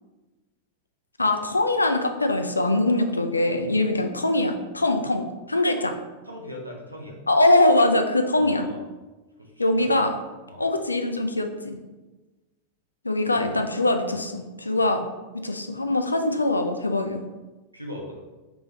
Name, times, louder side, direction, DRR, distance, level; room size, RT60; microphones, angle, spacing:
voice 1, 1.2-5.9 7.3-8.7 9.6-10.1 10.6-11.8 13.0-15.0 15.4-17.2, left 2 dB, 80° left, 6 dB, 0.4 m, -22 dB
voice 2, 3.7-4.1 5.8-5.9 6.2-7.2 8.3-8.8 9.4-10.0 10.5-10.7 13.2-13.6 17.7-18.1, left 1 dB, 90° right, -1 dB, 0.8 m, -39 dB
3.4 x 3.4 x 4.0 m, 1.2 s
figure-of-eight pair, 90°, 0 cm